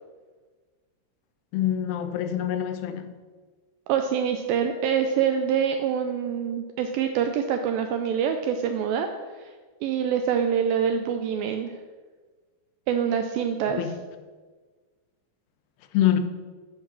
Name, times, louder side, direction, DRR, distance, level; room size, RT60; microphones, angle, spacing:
voice 1, 1.5-3.1 13.8-13.9 15.9-16.2, left 11 dB, 85° left, 9 dB, 2.7 m, -25 dB
voice 2, 3.9-9.1 9.4-9.5 9.8-11.7 12.9-13.8, right 8 dB, 85° right, 6 dB, 2.0 m, -25 dB
9.7 x 3.7 x 7.2 m, 1.4 s
omnidirectional pair, 4.5 m